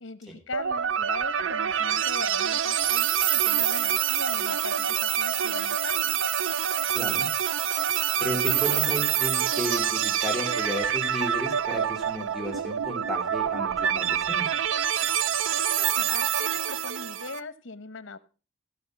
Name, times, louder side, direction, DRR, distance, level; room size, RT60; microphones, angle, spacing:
voice 1, 0.0-6.2 15.6-18.2, left 4 dB, 80° left, 14 dB, 1.0 m, -40 dB
sound 1, 0.5-17.4, right 9 dB, 90° right, 0.5 m, -26 dB
voice 2, 6.9-7.3 8.2-14.5, equal, ahead, 1 dB, 2.7 m, -33 dB
15.0 x 6.3 x 5.9 m, 0.35 s
head